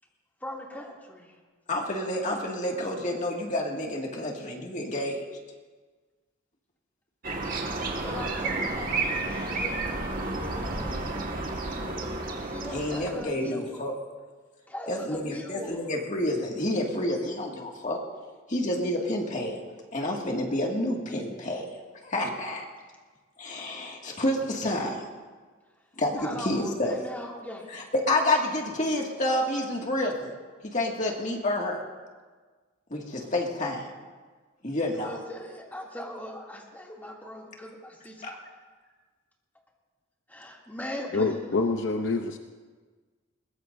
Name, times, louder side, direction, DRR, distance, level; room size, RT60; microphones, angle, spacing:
voice 1, 0.4-1.3 8.0-11.0 12.4-13.8 14.7-15.8 26.1-27.6 35.0-38.4 40.3-41.5, left 1 dB, 10° left, -3 dB, 2.6 m, -40 dB
voice 2, 1.7-5.2 12.7-13.9 14.9-17.5 17.8-18.0 18.5-19.6 19.9-21.7 22.0-22.6 23.4-25.0 26.0-27.0 27.7-30.3 30.6-31.8 32.9-33.9 34.6-35.2 38.2-38.3, left 1 dB, 35° left, 0 dB, 2.1 m, -29 dB
sound 1, 7.2-13.2, right 3 dB, 45° right, 1.8 m, -31 dB
voice 3, 41.1-42.4, left 3 dB, 60° left, 5 dB, 0.7 m, -26 dB
21.5 x 20.5 x 2.7 m, 1.4 s
head